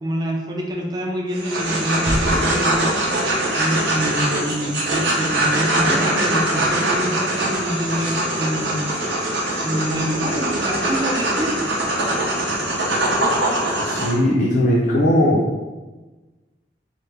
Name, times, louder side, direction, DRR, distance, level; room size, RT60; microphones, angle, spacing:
voice 1, 0.0-2.9 3.2-9.2 9.6-11.6, equal, 25° right, 0 dB, 0.4 m, -26 dB
sound 1, 1.3-14.1, right 1 dB, 70° right, 0.7 m, -22 dB
sound 2, 2.1-3.5, equal, 85° left, 0.8 m, -28 dB
voice 2, 13.8-15.4, left 1 dB, 50° left, -5 dB, 0.4 m, -18 dB
3.3 x 2.1 x 3.3 m, 1.2 s
head